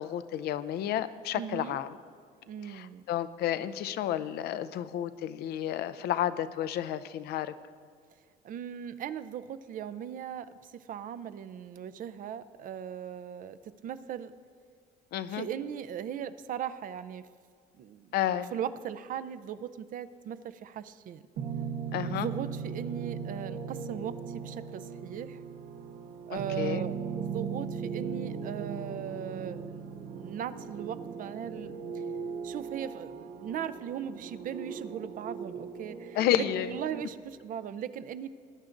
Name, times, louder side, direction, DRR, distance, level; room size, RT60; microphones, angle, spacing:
voice 1, 0.0-1.9 2.7-7.5 15.1-15.5 18.1-18.5 21.9-22.3 26.3-26.8 36.2-36.7, left 11 dB, 70° left, 14 dB, 0.5 m, -31 dB
voice 2, 1.3-1.8 2.5-3.0 8.4-13.6 13.8-14.3 15.3-17.2 17.8-18.1 18.5-21.2 22.1-25.4 26.3-31.7 32.4-38.3, right 9 dB, 55° right, 13 dB, 0.5 m, -38 dB
sound 1, 21.4-37.0, right 6 dB, 80° right, 0.9 m, -38 dB
19.5 x 9.7 x 2.6 m, 2.1 s
cardioid pair, 110°, 17 cm